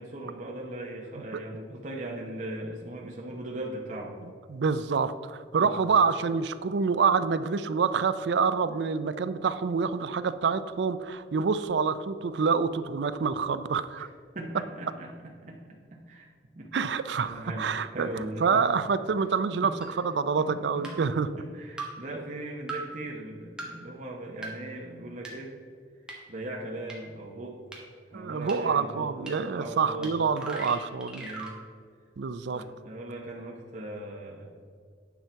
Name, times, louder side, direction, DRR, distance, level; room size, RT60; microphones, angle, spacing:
voice 1, 0.0-4.1 5.5-5.8 14.0-14.1 14.3-15.1 15.4-16.3 16.5-18.6 19.6-20.0 20.4-21.1 21.4-25.5 26.3-27.6 28.1-30.1 31.2-31.6 32.5-34.5, right 1 dB, 45° right, -1 dB, 0.8 m, -39 dB
voice 2, 4.5-14.1 16.7-18.1 18.4-21.3 28.1-31.3 32.2-32.6, right 5 dB, 70° right, 13 dB, 0.4 m, -27 dB
sound 1, 19.8-19.9 20.8-20.9 21.8-21.9 22.7-22.8 23.6-23.7 24.4-24.5 25.2-25.3 26.1-26.2 26.9-27.0 27.7-27.8 28.5-28.6 29.3-29.4 30.0-30.1 30.3-31.5, right 3 dB, 5° right, 1.3 m, -38 dB
9.2 x 5.8 x 4.5 m, 2.1 s
head